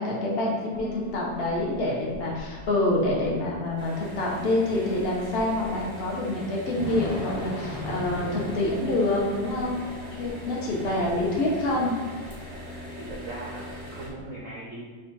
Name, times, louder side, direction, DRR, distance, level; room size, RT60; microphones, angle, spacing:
voice 1, 0.0-9.9 10.2-11.9, left 1 dB, 70° left, -3 dB, 0.5 m, -27 dB
Thunder / Rain, 0.7-14.2, left 2 dB, 85° left, 1.7 m, -41 dB
sound 1, 0.7-14.4, left 1 dB, 35° left, 0.9 m, -45 dB
sound 2, 3.8-14.1, equal, 40° right, 0.4 m, -41 dB
voice 2, 10.8-11.2 13.0-14.9, right 2 dB, 70° right, -4 dB, 0.7 m, -40 dB
4.8 x 2.4 x 4.5 m, 1.5 s
omnidirectional pair, 2.1 m